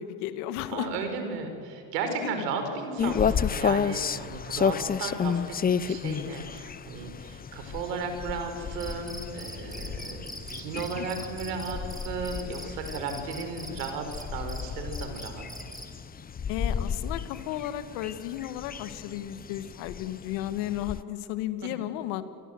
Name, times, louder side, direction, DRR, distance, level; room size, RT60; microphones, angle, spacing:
voice 1, 0.0-0.9 2.2-2.5 11.0-11.1 16.5-22.2, left 12 dB, 75° left, 11 dB, 1.9 m, -34 dB
voice 2, 0.7-15.4, right 4 dB, 90° right, 6 dB, 5.0 m, -35 dB
sound 1, 3.0-21.0, left 7 dB, 20° left, 0.6 m, -32 dB
Cricket, 8.8-16.0, right 1 dB, 10° right, 3.5 m, -43 dB
28.0 x 23.5 x 8.0 m, 2.5 s
supercardioid pair, 90°, 46 cm